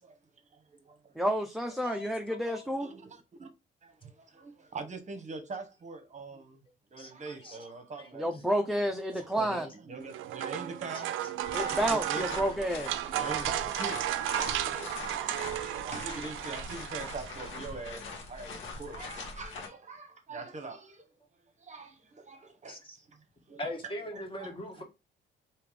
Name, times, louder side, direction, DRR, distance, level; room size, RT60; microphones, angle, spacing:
voice 1, 0.5-1.2 2.8-3.5 3.8-6.6 6.9-8.4 9.3-11.1 11.6-12.3 13.1-21.1 21.6-23.6 24.1-24.5, right 3 dB, 35° right, 1.0 m, -43 dB
voice 2, 1.1-2.9 8.1-9.7 11.5-13.0, equal, ahead, 0.6 m, -30 dB
voice 3, 1.8-2.1 2.5-2.6 7.0-7.6 8.0-8.1 13.1-13.3 14.8-14.9 22.7-23.0 23.6-24.8, left 1 dB, 25° left, 1.6 m, -41 dB
sound 1, 10.0-17.6, right 12 dB, 85° right, 0.4 m, -34 dB
sound 2, 11.4-19.7, left 4 dB, 75° left, 1.3 m, -42 dB
3.5 x 2.9 x 4.7 m
cardioid pair, 90°, 20 cm